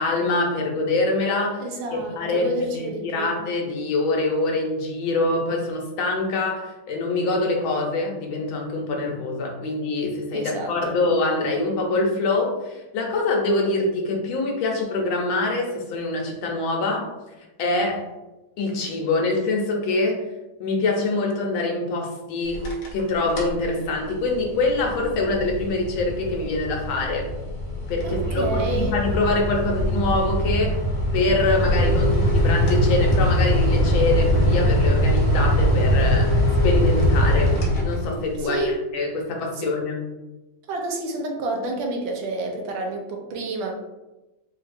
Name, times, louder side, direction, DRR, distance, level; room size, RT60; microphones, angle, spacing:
voice 1, 0.0-1.6 2.2-17.1 17.6-18.1 18.6-20.2 20.6-27.3 27.9-30.8 31.1-40.0, left 2 dB, 85° left, 0 dB, 1.5 m, -24 dB
voice 2, 1.6-3.4 10.3-11.0 28.0-28.9 38.4-38.8 39.6-39.7 40.7-43.7, right 2 dB, 80° right, 2 dB, 1.4 m, -29 dB
sound 1, 22.5-23.0 23.3-23.6 24.1-38.4, equal, 60° left, 1.1 m, -22 dB
3.8 x 2.7 x 2.5 m, 1.0 s
omnidirectional pair, 2.2 m